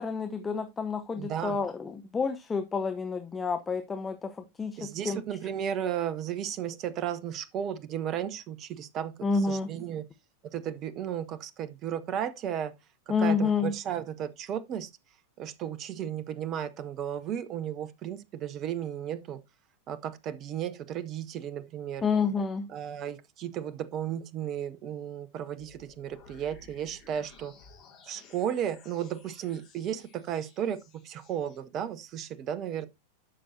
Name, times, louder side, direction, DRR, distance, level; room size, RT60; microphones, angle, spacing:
voice 1, 0.0-5.2 9.2-9.7 13.1-13.7 22.0-22.7, left 5 dB, 15° left, 0.8 m, -29 dB
voice 2, 1.1-1.6 4.8-9.1 9.5-10.0 10.4-12.7 13.1-14.9 15.4-19.4 19.9-22.0 22.7-27.5 28.1-32.9, right 9 dB, 35° right, 0.7 m, -34 dB
sound 1, 25.6-31.6, left 4 dB, 30° left, 4.1 m, -56 dB
12.0 x 6.1 x 2.7 m
figure-of-eight pair, 90°, 0 cm